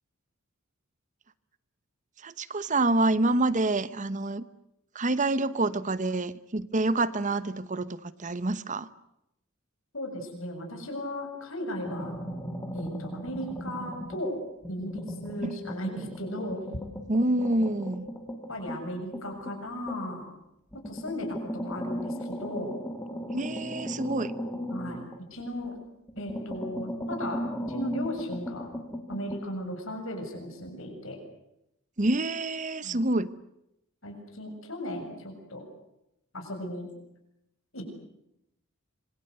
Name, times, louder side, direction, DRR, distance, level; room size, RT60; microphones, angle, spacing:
voice 1, 2.2-4.4 4.9-8.9 15.5-15.6 17.1-18.1 23.3-24.3 32.0-33.3, right 2 dB, 35° right, 1.0 m, -27 dB
voice 2, 9.9-12.2 12.7-14.4 14.7-16.6 18.5-20.3 20.7-22.8 24.7-25.8 26.2-27.4 27.7-28.7 29.1-31.2 32.8-33.0 34.0-35.6 36.3-36.9 37.7-37.9, left 1 dB, 65° left, 7.1 m, -36 dB
sound 1, 11.8-14.3 14.6-20.2 20.7-25.7 26.1-29.4, equal, 10° left, 2.4 m, -37 dB
26.5 x 24.0 x 8.1 m
head